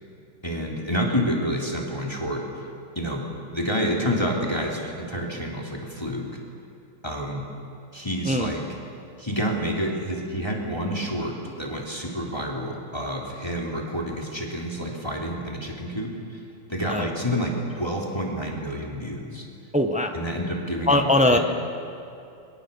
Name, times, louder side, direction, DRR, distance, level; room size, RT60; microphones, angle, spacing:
voice 1, 0.4-2.7 2.9-3.3 3.5-6.3 7.0-7.4 7.9-8.6 9.2-16.4 16.7-19.5 20.1-21.4, equal, 10° left, -2 dB, 3.3 m, -28 dB
voice 2, 8.2-8.6 16.9-17.1 19.7-20.1 20.9-21.4, left 1 dB, 5° right, 4 dB, 0.8 m, -21 dB
30.0 x 24.0 x 7.1 m, 2.7 s
omnidirectional pair, 2.4 m